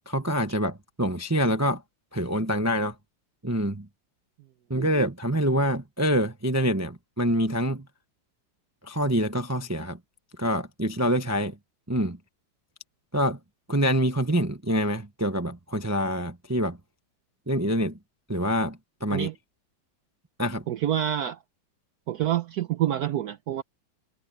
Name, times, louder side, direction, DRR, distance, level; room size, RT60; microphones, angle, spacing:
voice 1, 0.1-1.8 2.1-2.9 3.4-3.9 4.7-7.8 8.8-10.0 10.4-11.5 11.9-12.2 13.1-13.4 13.7-16.8 17.5-18.0 18.3-19.3 20.4-20.6, equal, 15° right, 0.7 m, -26 dB
voice 2, 20.7-21.4 22.1-23.6, right 11 dB, 65° right, 1.2 m, -27 dB
omnidirectional pair, 1.9 m